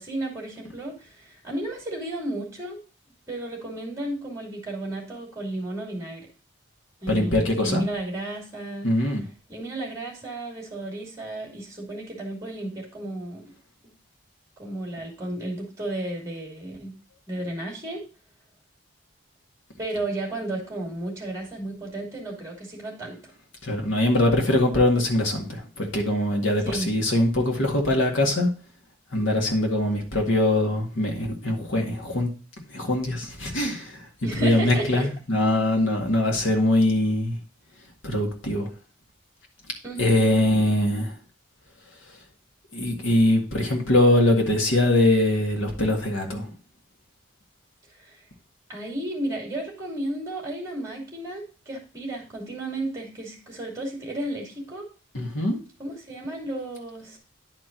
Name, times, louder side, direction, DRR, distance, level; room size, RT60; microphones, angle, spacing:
voice 1, 0.0-2.8 3.3-6.3 7.0-8.9 9.5-13.5 14.6-16.9 17.3-18.0 19.8-23.3 26.6-26.9 34.2-35.1 39.8-40.2 48.0-48.2 48.7-54.9 55.8-57.2, right 1 dB, 15° right, 2.6 m, -33 dB
voice 2, 7.1-7.8 8.8-9.2 23.6-28.5 29.1-32.3 32.7-37.4 38.0-38.7 40.0-41.1 42.7-46.5 55.1-55.6, left 1 dB, 70° left, 1.9 m, -22 dB
10.0 x 4.6 x 3.9 m
head